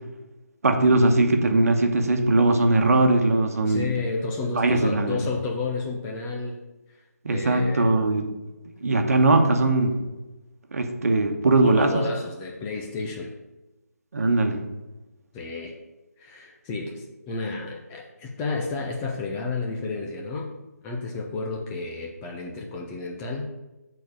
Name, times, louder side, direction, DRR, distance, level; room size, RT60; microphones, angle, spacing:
voice 1, 0.6-3.9 4.5-5.2 7.2-8.2 8.8-10.0 10.7-12.0 14.1-14.6, right 2 dB, 60° right, 5 dB, 1.1 m, -20 dB
voice 2, 3.6-6.6 7.3-7.9 11.6-13.4 15.3-15.8 16.2-20.5 20.8-23.5, left 3 dB, 10° left, 0 dB, 0.4 m, -31 dB
6.7 x 4.2 x 6.3 m, 1.1 s
figure-of-eight pair, 165°, 9 cm